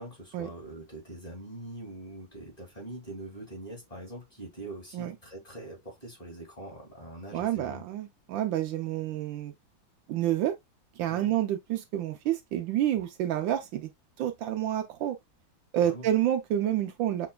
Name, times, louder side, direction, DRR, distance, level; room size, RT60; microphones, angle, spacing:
voice 1, 0.0-7.8 11.1-11.3 15.8-16.1, right 2 dB, 20° left, 2.3 m, -43 dB
voice 2, 7.3-9.5 10.1-10.6 11.0-13.9 14.2-15.2 15.7-17.3, right 11 dB, 75° right, 1.3 m, -29 dB
5.9 x 3.0 x 2.2 m
omnidirectional pair, 2.2 m